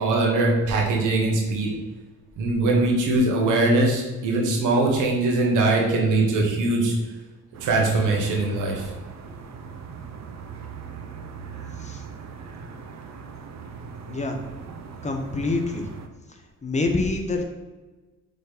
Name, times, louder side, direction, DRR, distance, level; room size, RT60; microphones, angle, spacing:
voice 1, 0.0-1.7 2.4-7.0 7.6-8.9, right 2 dB, 85° right, -1 dB, 1.7 m, -21 dB
sound 1, 7.5-16.1, right 5 dB, 60° right, 0.8 m, -40 dB
voice 2, 14.1-14.4 15.0-15.9 16.6-17.4, left 3 dB, 25° left, 3 dB, 1.1 m, -26 dB
5.4 x 4.0 x 5.2 m, 1.2 s
cardioid pair, 90°, 30 cm